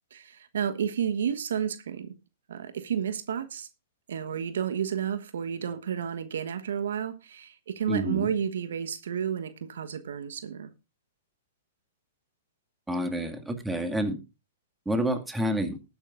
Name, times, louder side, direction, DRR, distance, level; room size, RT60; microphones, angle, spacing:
voice 1, 0.1-2.1 2.5-3.7 4.1-10.7, right 8 dB, 65° right, 1.3 m, -31 dB
voice 2, 7.9-8.3 12.9-14.2 14.9-15.8, right 1 dB, 5° right, 2.2 m, -28 dB
20.0 x 9.5 x 2.5 m
figure-of-eight pair, 110°, 0 cm